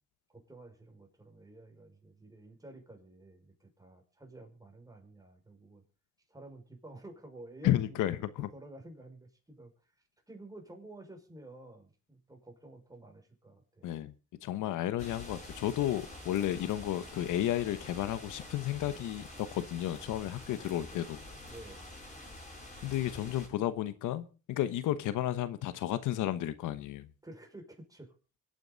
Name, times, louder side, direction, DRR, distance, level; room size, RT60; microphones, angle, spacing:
voice 1, 0.3-5.8 6.3-8.0 8.5-9.9 10.3-13.9 20.0-20.1 20.5-21.1 21.5-21.8 27.2-28.2, right 2 dB, 10° right, 5.5 m, -51 dB
voice 2, 7.6-8.5 13.8-14.1 14.4-21.2 22.8-27.1, left 13 dB, 85° left, 1.1 m, -32 dB
sound 1, 15.0-23.5, left 1 dB, 25° left, 6.9 m, -47 dB
25.0 x 9.2 x 4.0 m
cardioid pair, 90°, 30 cm